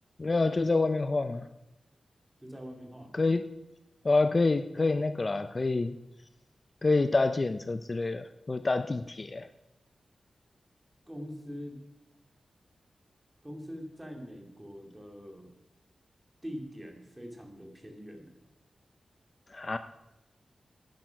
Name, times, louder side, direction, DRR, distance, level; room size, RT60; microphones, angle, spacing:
voice 1, 0.2-1.4 3.1-3.4 4.0-6.0 6.8-9.5 19.5-19.8, left 3 dB, 35° left, 11 dB, 0.4 m, -27 dB
voice 2, 2.4-3.1 11.1-11.8 13.4-15.5 16.4-18.3, equal, 10° right, 2 dB, 2.5 m, -43 dB
10.5 x 10.5 x 5.8 m, 0.93 s
wide cardioid pair, 90°, 0 cm